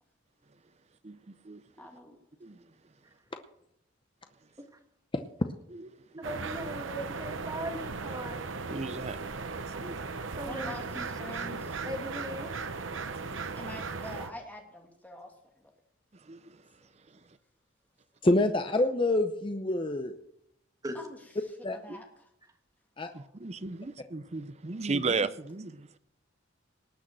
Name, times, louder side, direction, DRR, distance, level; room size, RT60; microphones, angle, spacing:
voice 1, 1.0-1.6 2.4-2.7 5.7-6.3 8.7-9.2 9.4-10.0 12.9-13.3 16.1-16.6 17.1-17.3 23.1-26.0, right 4 dB, 35° right, 14 dB, 0.6 m, -36 dB
voice 2, 1.8-2.7 10.5-11.8 13.6-15.7 20.9-22.3, left 1 dB, 10° left, 2 dB, 2.4 m, -46 dB
voice 3, 6.2-8.4 10.4-10.7 11.8-12.5 20.8-21.0 23.0-23.2, right 1 dB, 20° right, 5 dB, 1.7 m, -38 dB
sound 1, 6.2-14.3, right 4 dB, 85° right, 0.9 m, -37 dB
voice 4, 18.2-20.1 21.6-21.8 23.0-23.1, left 2 dB, 25° left, 7 dB, 0.7 m, -26 dB
19.0 x 6.4 x 7.5 m, 0.76 s
head